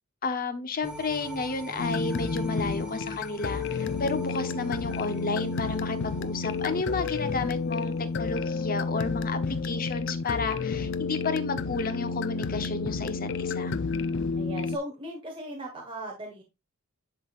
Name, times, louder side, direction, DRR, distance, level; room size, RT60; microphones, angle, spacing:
voice 1, 0.2-13.7, left 4 dB, 40° left, 0.9 m, -32 dB
sound 1, 0.8-9.2 9.6-9.7, right 2 dB, 5° right, 1.1 m, -45 dB
sound 2, 1.8-14.8, left 4 dB, 55° left, 0.5 m, -31 dB
voice 2, 4.2-4.6 14.4-16.4, right 1 dB, 25° right, 1.4 m, -38 dB
11.0 x 3.9 x 2.4 m
head